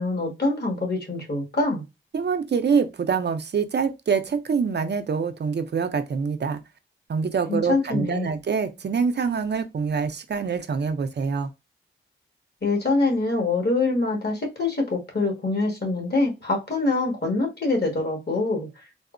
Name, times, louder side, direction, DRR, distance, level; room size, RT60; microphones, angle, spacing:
voice 1, 0.0-1.8 7.5-8.3 12.6-18.8, left 3 dB, 50° left, 1.5 m, -25 dB
voice 2, 2.1-6.6 7.1-11.5, right 5 dB, 55° right, 0.4 m, -25 dB
3.6 x 2.0 x 2.5 m
cardioid pair, 55°, 21 cm